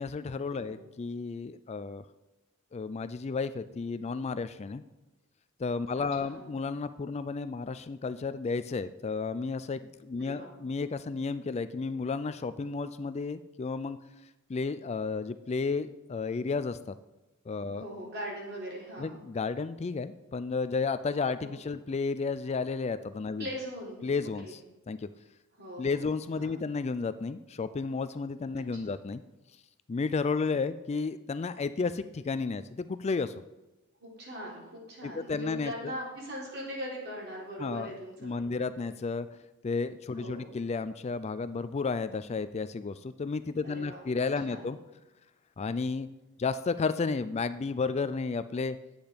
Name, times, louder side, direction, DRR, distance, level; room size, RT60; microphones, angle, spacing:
voice 1, 0.0-2.0 2.7-4.8 5.6-14.0 14.5-16.9 17.5-17.9 19.0-23.5 24.0-24.6 24.9-25.1 25.8-29.2 29.9-33.3 35.0-36.0 37.6-37.9 38.2-39.3 39.6-44.8 45.6-46.1 46.4-48.8, left 4 dB, 30° left, 13 dB, 0.3 m, -32 dB
voice 2, 6.0-6.5 10.2-10.5 17.7-19.2 21.4-21.5 23.4-24.0 24.4-24.6 25.6-26.0 26.4-26.6 28.5-29.0 34.0-38.6 40.1-40.5 43.6-44.1 44.5-44.7, equal, 50° right, -3 dB, 3.7 m, -41 dB
10.5 x 8.8 x 5.1 m, 1.0 s
head